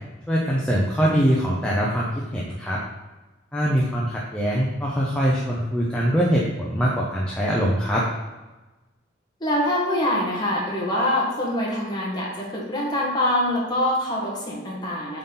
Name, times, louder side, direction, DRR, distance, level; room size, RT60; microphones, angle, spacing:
voice 1, 0.3-2.8 3.5-8.0, equal, 5° left, -5 dB, 0.7 m, -23 dB
voice 2, 9.4-15.2, left 1 dB, 20° left, -4 dB, 1.5 m, -24 dB
7.6 x 4.1 x 3.9 m, 1.1 s
head